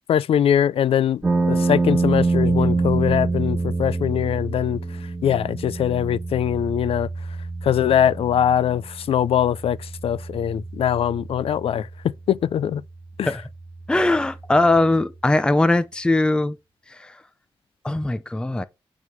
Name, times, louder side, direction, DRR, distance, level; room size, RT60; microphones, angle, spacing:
voice 1, 0.1-1.2 1.5-4.8 5.2-7.1 7.6-11.9 12.3-12.8 13.2-13.3, left 9 dB, 90° left, 0.4 m, -22 dB
sound 1, 1.2-15.3, right 3 dB, 20° right, 1.5 m, -27 dB
voice 2, 13.9-16.6 16.9-17.2 17.8-18.6, left 2 dB, 10° left, 0.5 m, -20 dB
9.3 x 3.6 x 6.1 m
wide cardioid pair, 145°, 9 cm